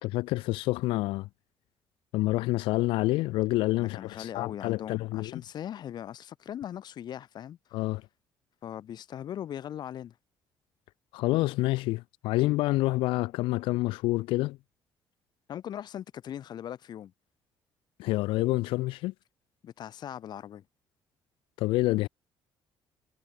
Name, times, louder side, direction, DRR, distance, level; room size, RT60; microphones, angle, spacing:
voice 1, 0.0-1.3 2.1-5.3 7.7-8.0 11.1-14.6 18.0-19.1 21.6-22.1, left 19 dB, 90° left, 3.4 m, -27 dB
voice 2, 3.8-7.8 8.6-10.1 15.5-17.1 19.6-20.6, left 10 dB, 55° left, 3.2 m, -40 dB
cardioid pair, 110°, 9 cm